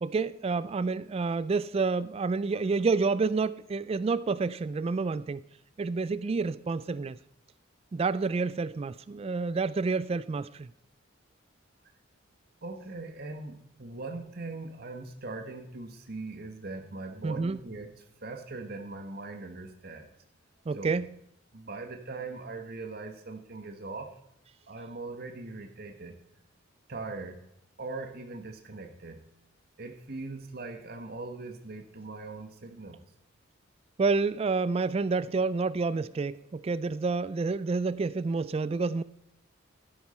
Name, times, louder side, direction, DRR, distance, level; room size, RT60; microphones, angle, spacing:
voice 1, 0.0-5.4 5.8-7.2 7.9-10.7 17.2-17.6 20.7-21.1 34.0-39.0, right 4 dB, 30° right, 0.3 m, -29 dB
voice 2, 12.6-20.1 20.7-20.9 21.5-24.1 24.7-26.1 26.9-27.4 27.8-29.2 29.8-33.0, right 3 dB, 50° right, 1.3 m, -40 dB
12.5 x 10.5 x 4.3 m
head